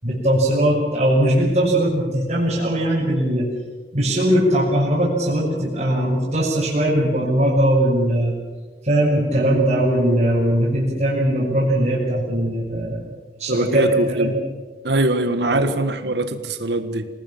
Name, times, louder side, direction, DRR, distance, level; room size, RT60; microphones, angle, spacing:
voice 1, 0.0-3.5 3.9-8.3 8.8-13.0 13.4-14.3 15.4-15.6, right 1 dB, 40° right, -8 dB, 6.5 m, -20 dB
voice 2, 13.5-14.3 14.8-17.1, right 2 dB, 75° right, 10 dB, 1.7 m, -22 dB
26.0 x 19.0 x 7.3 m, 1.3 s
head